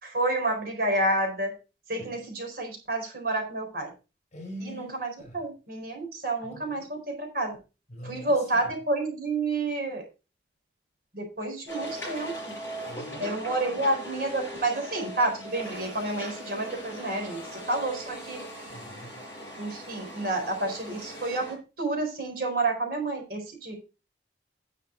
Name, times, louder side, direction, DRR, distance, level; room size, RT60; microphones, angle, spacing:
voice 1, 0.0-1.5 1.9-3.9 4.6-7.6 8.0-10.0 11.1-12.5 13.2-17.4 17.7-18.4 19.6-21.5 21.8-23.8, right 2 dB, 55° right, 4.2 m, -29 dB
voice 2, 4.3-5.4 6.4-6.9 7.9-8.7 12.9-13.8 18.7-19.1, equal, 40° left, 4.4 m, -44 dB
sound 1, 11.7-21.6, equal, 15° left, 6.2 m, -39 dB
10.5 x 6.4 x 4.5 m
head